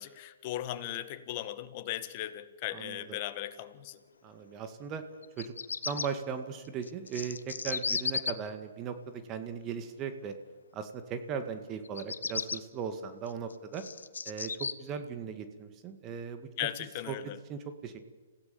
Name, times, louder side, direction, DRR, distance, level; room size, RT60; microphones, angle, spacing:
voice 1, 0.0-4.0 16.6-17.4, left 13 dB, 40° left, 11 dB, 1.8 m, -37 dB
voice 2, 2.7-3.0 4.2-5.0 5.4-5.5 5.9-10.3 10.7-13.8 14.3-16.5 17.1-17.2 17.5-18.0, right 6 dB, 30° right, 8 dB, 2.0 m, -38 dB
Bird vocalization bird call bird song, 5.2-6.1 6.8-8.3 11.8-12.6 13.3-14.7, left 5 dB, 90° left, 1.1 m, -34 dB
27.0 x 16.5 x 7.1 m, 1.3 s
hypercardioid pair, 135°, 0 cm